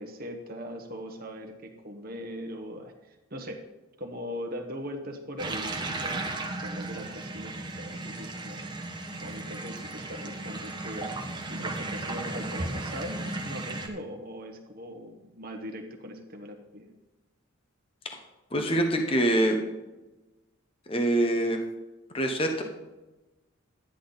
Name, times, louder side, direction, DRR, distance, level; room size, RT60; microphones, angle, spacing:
voice 1, 0.0-3.6 4.0-8.6 9.2-11.1 11.5-16.9, equal, 40° right, 2 dB, 1.1 m, -40 dB
sound 1, 5.4-13.9, right 2 dB, 20° right, 1.1 m, -35 dB
voice 2, 18.5-19.6 20.9-21.6 22.1-22.6, right 1 dB, 25° left, 4 dB, 0.9 m, -24 dB
12.0 x 9.9 x 4.0 m, 1.1 s
head